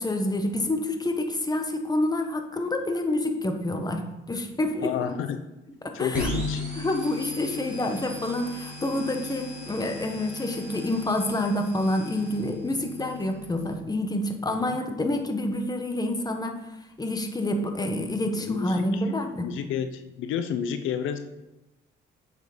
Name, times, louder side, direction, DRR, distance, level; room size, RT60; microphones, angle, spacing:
voice 1, 0.0-5.1 5.8-6.3 6.7-16.6 17.0-19.5, left 1 dB, 20° left, 5 dB, 1.3 m, -28 dB
voice 2, 4.8-5.4 5.9-6.6 14.5-14.8 18.4-19.0 19.4-21.2, left 8 dB, 85° left, 9 dB, 0.7 m, -31 dB
sound 1, 6.1-13.7, left 1 dB, 5° right, 3.7 m, -37 dB
8.3 x 6.6 x 5.1 m, 0.96 s
cardioid pair, 90°, 20 cm